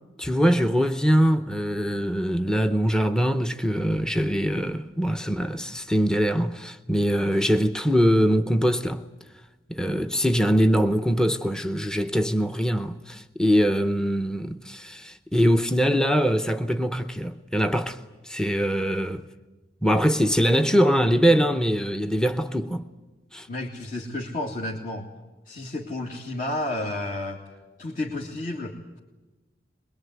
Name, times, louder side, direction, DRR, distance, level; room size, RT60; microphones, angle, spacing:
voice 1, 0.2-9.0 9.7-18.0 18.2-19.3 19.8-22.8 23.3-23.5, equal, 5° left, 0.7 m, -23 dB
voice 2, 23.5-25.1 25.5-27.4 27.8-29.0, left 1 dB, 50° left, 2.3 m, -31 dB
22.5 x 22.0 x 9.4 m
head